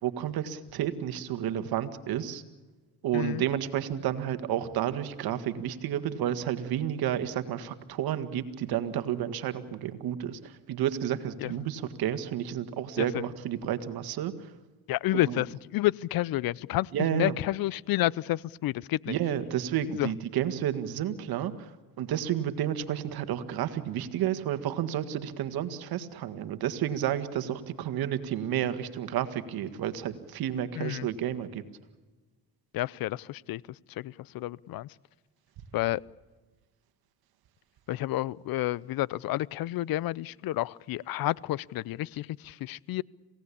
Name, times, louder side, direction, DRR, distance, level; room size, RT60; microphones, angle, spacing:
voice 1, 0.0-2.4 3.0-14.5 15.1-15.4 16.9-17.4 19.1-21.7 22.0-31.6, right 10 dB, 70° right, 10 dB, 1.9 m, -31 dB
voice 2, 3.1-3.4 11.4-11.5 13.0-13.1 14.9-15.5 15.7-19.1 20.0-20.1 30.8-31.1 32.7-33.6 34.0-34.9 35.7-36.0 37.9-43.0, left 16 dB, 65° left, 24 dB, 0.7 m, -30 dB
27.5 x 17.5 x 8.6 m, 1.3 s
supercardioid pair, 80°, 37 cm